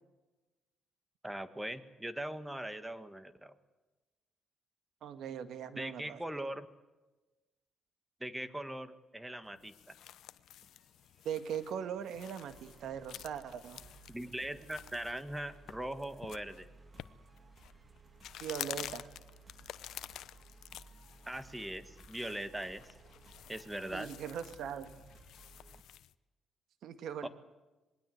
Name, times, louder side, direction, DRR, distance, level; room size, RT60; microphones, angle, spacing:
voice 1, 1.2-3.6 5.8-6.7 8.2-10.0 14.1-16.7 21.3-22.8 23.5-24.1 27.2-27.3, right 1 dB, 10° right, 11 dB, 1.7 m, -40 dB
voice 2, 5.0-6.2 11.2-13.8 18.4-19.1 23.9-24.9 26.8-27.3, right 8 dB, 75° right, 10 dB, 1.9 m, -40 dB
sound 1, 9.4-26.1, left 12 dB, 80° left, 0.8 m, -50 dB
sound 2, 9.8-25.8, right 4 dB, 30° right, 2.3 m, -59 dB
26.5 x 20.5 x 8.0 m, 1.1 s
cardioid pair, 90°, 0 cm